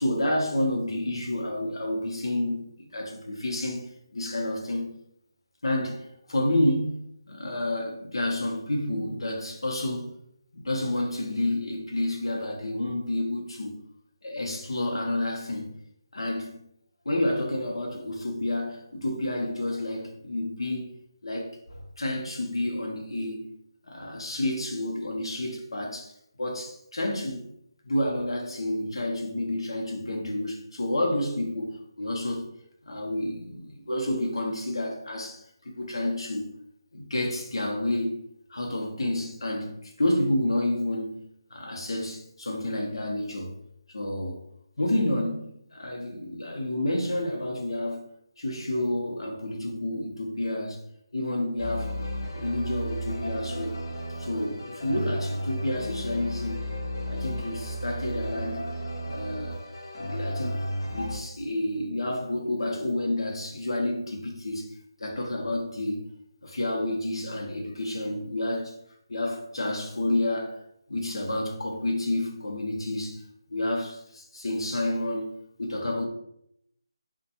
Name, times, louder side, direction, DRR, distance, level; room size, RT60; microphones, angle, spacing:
voice 1, 0.0-3.8 4.1-4.9 5.6-6.9 7.3-10.1 10.5-13.7 14.2-15.8 16.1-16.6 17.0-20.9 21.2-23.5 23.8-26.1 26.4-27.5 27.8-32.4 32.8-36.4 36.9-38.2 38.5-43.5 43.9-44.4 44.8-48.0 48.4-50.8 51.1-53.7 54.2-56.6 57.1-58.7 59.0-59.6 60.0-60.6 60.8-64.7 65.0-66.0 66.4-68.8 69.1-70.6 70.9-73.2 73.5-76.1, left 1 dB, 85° left, 0.7 m, -29 dB
sound 1, 51.6-61.2, equal, 45° left, 0.5 m, -33 dB
2.5 x 2.2 x 2.8 m
figure-of-eight pair, 170°, 3 cm